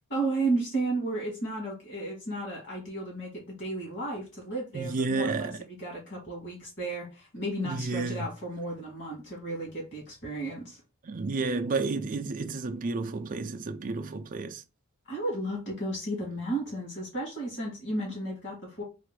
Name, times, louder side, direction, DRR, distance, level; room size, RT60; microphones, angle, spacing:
voice 1, 0.1-10.8 15.1-18.8, right 2 dB, 55° left, 2.7 m, -33 dB
voice 2, 4.7-5.6 7.6-8.3 11.0-14.6, right 3 dB, 35° right, 0.4 m, -31 dB
4.1 x 2.5 x 4.7 m
head